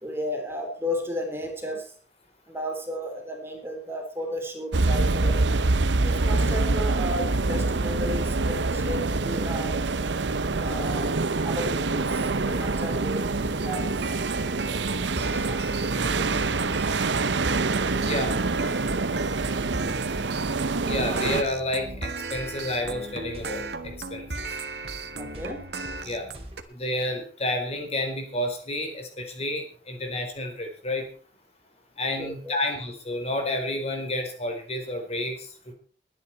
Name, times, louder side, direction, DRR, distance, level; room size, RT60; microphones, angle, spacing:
voice 1, 0.0-1.9 2.5-5.4 6.0-9.8 10.5-11.1 11.4-14.1 15.4-15.6 25.1-25.6 32.2-32.6, equal, 15° right, 2 dB, 3.3 m, -34 dB
sound 1, 4.7-21.4, right 3 dB, 90° right, 0.9 m, -25 dB
sound 2, 13.6-26.6, right 3 dB, 70° right, 1.7 m, -36 dB
voice 2, 18.0-18.3 20.5-24.6 26.0-26.3 26.7-31.1 32.0-35.7, left 1 dB, 35° left, 4 dB, 4.2 m, -30 dB
sound 3, 21.8-26.6, right 1 dB, 35° right, 3.4 m, -46 dB
22.0 x 10.0 x 4.6 m, 0.41 s
head